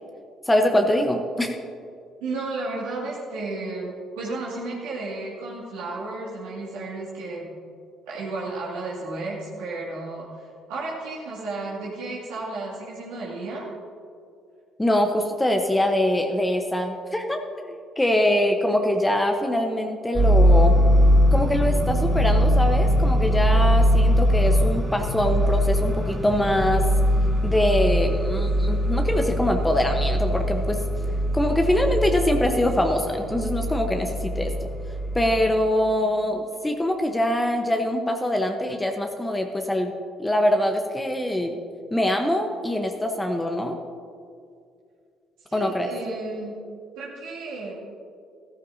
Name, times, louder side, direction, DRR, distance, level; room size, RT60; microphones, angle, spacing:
voice 1, 0.5-1.5 14.8-17.4 17.7-20.8 21.3-26.8 27.4-30.8 31.3-34.5 35.1-39.9 40.2-41.6 41.9-43.8 45.5-45.9, left 1 dB, 15° left, 4 dB, 1.1 m, -23 dB
voice 2, 2.2-7.5 8.1-13.7 45.5-46.5 46.9-47.7, right 2 dB, 80° right, -6 dB, 2.4 m, -33 dB
sound 1, 20.2-35.5, equal, 10° right, 2.2 m, -21 dB
14.0 x 13.5 x 2.8 m, 2.3 s
hypercardioid pair, 50°, 0 cm